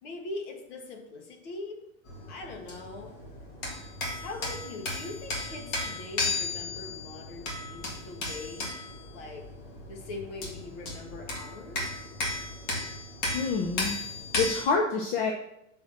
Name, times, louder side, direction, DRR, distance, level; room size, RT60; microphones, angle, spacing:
voice 1, 0.0-1.9 2.3-3.2 4.2-8.7 9.1-9.5 9.9-12.0, left 3 dB, 60° left, 3 dB, 1.8 m, -41 dB
sound 1, 2.1-14.6, left 2 dB, 40° left, 1.8 m, -35 dB
voice 2, 13.3-14.0 14.4-15.3, left 4 dB, 25° left, 2 dB, 0.5 m, -27 dB
6.2 x 4.3 x 6.1 m, 0.79 s
supercardioid pair, 155°, 40 cm